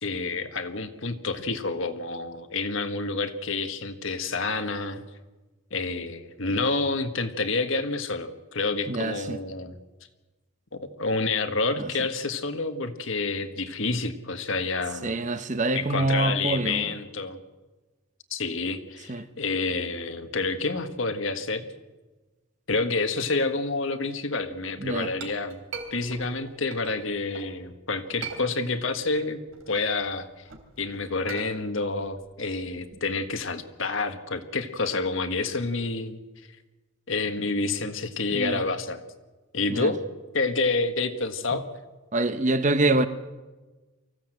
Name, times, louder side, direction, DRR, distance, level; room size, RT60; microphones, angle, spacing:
voice 1, 0.0-5.0 5.7-9.8 10.7-15.2 15.7-17.4 18.3-21.7 22.7-25.6 25.9-29.4 29.7-30.3 30.8-36.2 37.1-39.0 39.5-40.0 40.3-41.7, left 3 dB, 70° left, 1.6 m, -28 dB
voice 2, 8.9-9.4 11.8-11.9 15.0-16.9 19.1-19.3 24.8-25.1 38.3-38.6 39.7-39.9 42.1-43.1, right 2 dB, 35° right, 0.9 m, -25 dB
Chink clink, 24.7-27.5 28.0-29.0 29.4-33.4, right 5 dB, 75° right, 3.4 m, -42 dB
24.0 x 15.5 x 7.8 m
head